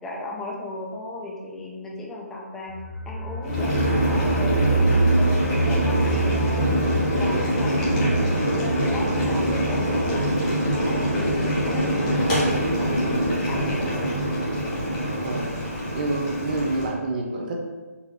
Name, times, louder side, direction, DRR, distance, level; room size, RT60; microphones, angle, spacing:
voice 1, 0.0-2.8 3.1-6.8 7.2-10.3 10.7-14.2, left 2 dB, 5° left, -3 dB, 0.3 m, -36 dB
sound 1, 2.7-13.4 13.7-13.8 14.1-14.2, right 3 dB, 65° left, 0.5 m, -27 dB
Boiling, 3.4-16.9, equal, 25° left, 1.2 m, -24 dB
voice 2, 7.2-7.6 11.1-11.3 15.2-15.5 15.8-17.6, right 2 dB, 35° right, 0 dB, 0.7 m, -28 dB
4.1 x 2.6 x 4.4 m, 1.2 s
figure-of-eight pair, 155°, 9 cm